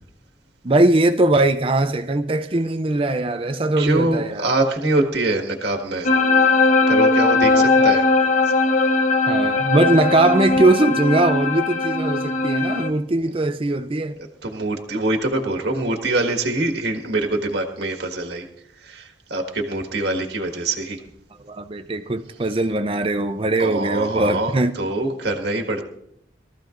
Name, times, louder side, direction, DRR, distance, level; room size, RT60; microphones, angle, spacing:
voice 1, 0.6-4.4 7.5-7.9 9.3-14.2 21.4-24.7, right 2 dB, 30° right, 9 dB, 0.5 m, -20 dB
voice 2, 3.8-6.1 6.9-8.0 14.4-18.5 18.7-21.0 23.6-25.8, right 2 dB, 60° right, 3 dB, 1.7 m, -24 dB
sound 1, 6.0-12.9, left 3 dB, 40° left, 0.9 m, -19 dB
22.5 x 14.0 x 2.6 m, 0.75 s
head